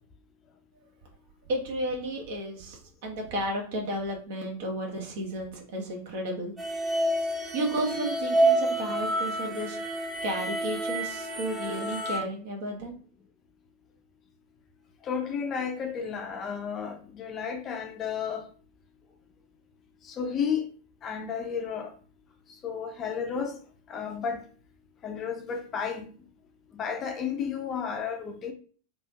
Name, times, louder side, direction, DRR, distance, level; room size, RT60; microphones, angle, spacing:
voice 1, 1.5-6.5 7.2-9.8 10.2-13.0, right 1 dB, 55° right, 1.0 m, -33 dB
sound 1, 6.6-12.2, right 1 dB, 10° right, 0.7 m, -28 dB
voice 2, 15.0-18.4 20.0-20.7 21.0-21.9 22.6-23.6 23.9-24.4 25.0-26.1 26.7-28.5, left 6 dB, 30° left, 0.5 m, -32 dB
3.4 x 2.4 x 2.7 m
figure-of-eight pair, 90°, 0 cm